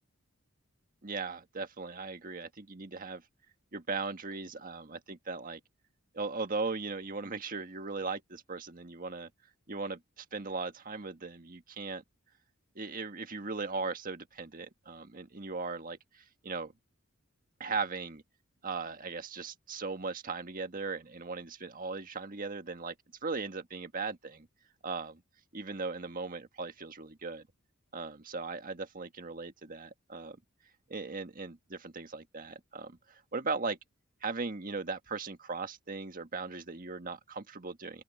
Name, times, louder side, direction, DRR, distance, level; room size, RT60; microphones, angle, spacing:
voice 1, 1.0-3.2 3.7-5.6 6.1-9.3 9.7-12.0 12.7-16.7 17.6-18.2 18.6-22.9 23.2-24.5 24.8-25.2 25.5-27.5 27.9-30.4 30.9-33.8 34.2-38.0, right 4 dB, 40° right, 1.6 m, -38 dB
open air
head